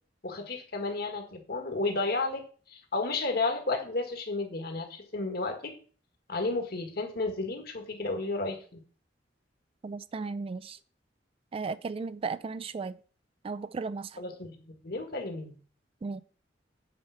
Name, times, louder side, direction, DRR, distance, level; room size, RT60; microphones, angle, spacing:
voice 1, 0.2-5.7 6.3-8.8 14.2-15.6, left 3 dB, 55° left, 1.7 m, -32 dB
voice 2, 9.8-10.8 11.5-13.0 13.4-14.1 16.0-16.2, right 4 dB, 30° right, 0.3 m, -35 dB
8.6 x 4.5 x 5.8 m
head